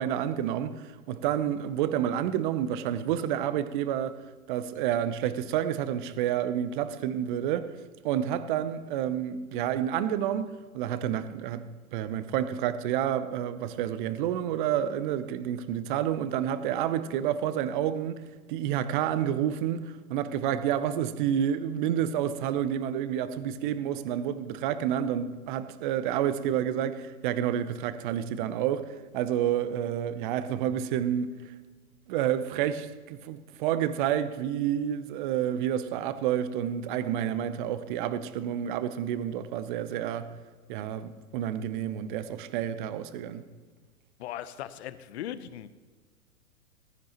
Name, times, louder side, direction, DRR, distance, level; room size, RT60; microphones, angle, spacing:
voice 1, 0.0-4.2 4.5-7.7 8.0-11.6 11.9-18.2 18.5-31.3 32.1-40.3 40.7-43.4, right 10 dB, 35° right, 13 dB, 0.8 m, -29 dB
voice 2, 44.2-45.7, left 11 dB, 50° left, 15 dB, 0.8 m, -38 dB
15.0 x 14.0 x 3.0 m, 1.4 s
figure-of-eight pair, 115°, 44 cm